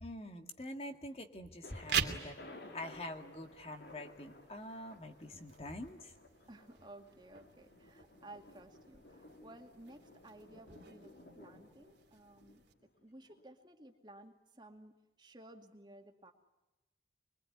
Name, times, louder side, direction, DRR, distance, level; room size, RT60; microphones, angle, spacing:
voice 1, 0.0-2.4 2.7-6.1, left 1 dB, 35° left, 5 dB, 1.9 m, -45 dB
Thunder, 1.6-13.4, left 1 dB, 80° left, 3.7 m, -57 dB
sound 1, 1.7-12.7, right 7 dB, 90° right, 2.6 m, -45 dB
voice 2, 6.5-12.6 13.0-14.9 15.2-16.3, right 1 dB, 25° right, 4 dB, 2.4 m, -56 dB
25.0 x 23.0 x 9.6 m, 1.0 s
head